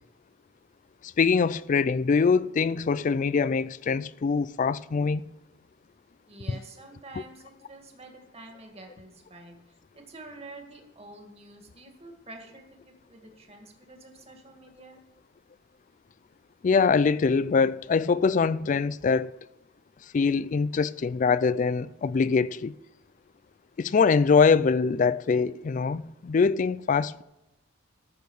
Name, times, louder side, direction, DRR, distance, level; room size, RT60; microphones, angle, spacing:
voice 1, 1.0-5.2 6.5-6.6 16.6-19.4 20.1-22.7 23.8-27.2, left 5 dB, 40° left, 0.3 m, -23 dB
voice 2, 6.3-15.0, right 2 dB, 35° right, 2.0 m, -48 dB
13.5 x 6.6 x 6.4 m
head